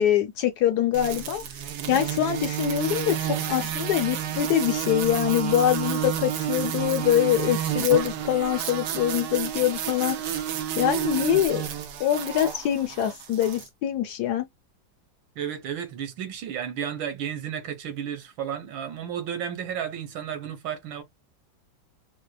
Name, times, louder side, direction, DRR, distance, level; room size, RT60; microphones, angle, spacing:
voice 1, 0.0-1.4 1.9-10.4 10.8-11.7 12.0-14.5, left 11 dB, 70° left, 1.0 m, -24 dB
sound 1, 0.9-13.7, right 10 dB, 70° right, 1.2 m, -30 dB
voice 2, 15.3-21.0, right 8 dB, 90° right, 1.7 m, -33 dB
5.0 x 2.1 x 2.3 m
omnidirectional pair, 2.1 m